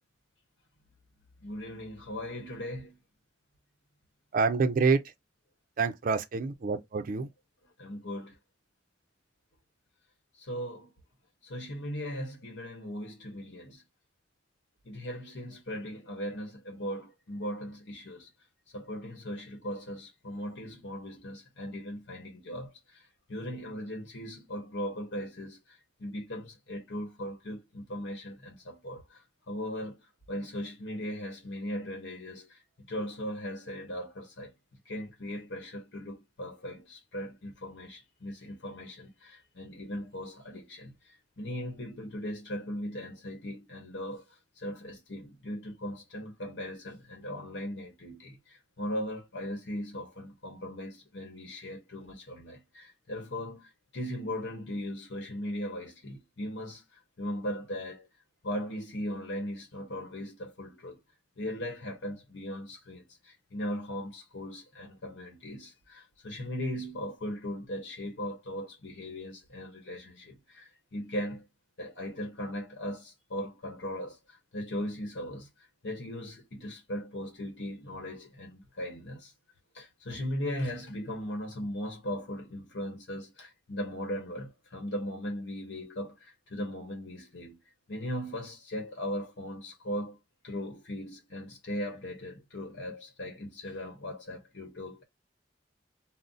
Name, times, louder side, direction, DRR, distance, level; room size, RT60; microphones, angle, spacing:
voice 1, 1.4-3.0 7.8-8.4 10.4-10.9 11.4-13.8 14.8-18.3 18.7-23.0 23.3-29.2 29.5-30.0 30.3-32.6 32.9-34.5 34.8-56.8 57.2-58.1 58.4-61.0 61.4-71.5 71.8-75.5 75.8-79.3 79.7-87.6 87.9-90.2 90.4-95.0, equal, 85° left, 0.9 m, -38 dB
voice 2, 4.3-5.1 5.8-7.3, right 4 dB, 50° right, 0.4 m, -27 dB
2.4 x 2.0 x 3.9 m
head